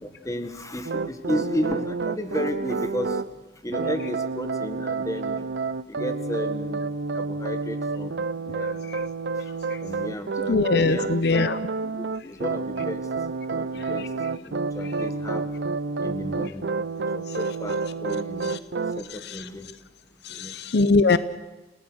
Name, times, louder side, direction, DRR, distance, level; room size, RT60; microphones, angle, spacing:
voice 1, 0.0-3.2 3.6-5.4 5.9-6.9 7.1-8.2 8.5-8.8 9.8-11.5 11.8-13.0 13.5-14.1 14.4-15.5 16.0-16.6 17.0-18.5 18.9-19.7 20.3-20.5, left 1 dB, 20° left, 9 dB, 1.6 m, -33 dB
sound 1, 0.8-3.3 3.7-19.0, right 4 dB, 85° right, 0.6 m, -29 dB
voice 2, 10.5-11.6 20.2-21.2, left 3 dB, 70° left, 15 dB, 0.6 m, -21 dB
28.5 x 18.0 x 6.3 m, 1.1 s
head